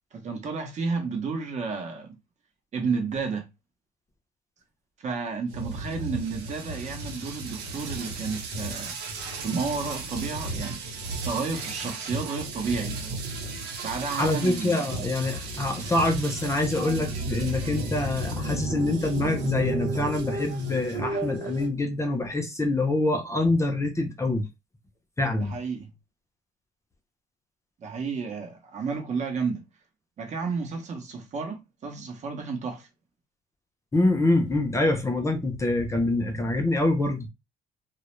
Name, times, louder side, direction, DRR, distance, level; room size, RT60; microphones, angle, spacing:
voice 1, 0.1-2.2 2.7-3.5 5.0-8.9 9.4-10.8 11.2-13.0 13.8-14.9 25.4-25.9 27.8-29.6 30.2-32.9, right 4 dB, 45° right, 0.8 m, -31 dB
sound 1, 5.5-21.7, right 2 dB, 85° right, 0.9 m, -34 dB
voice 2, 14.1-24.5 25.2-25.6 33.9-37.3, left 2 dB, 15° left, 0.6 m, -25 dB
2.3 x 2.0 x 3.0 m
cardioid pair, 110°, 17 cm